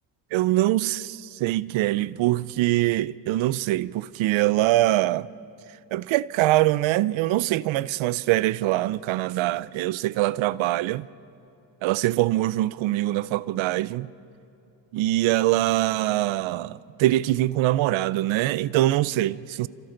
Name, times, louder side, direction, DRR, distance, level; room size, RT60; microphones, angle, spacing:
voice 1, 0.3-5.3 5.9-11.1 11.8-14.1 14.9-19.7, right 16 dB, 85° right, 0.6 m, -23 dB
29.0 x 27.0 x 3.9 m
cardioid pair, 115°, 46 cm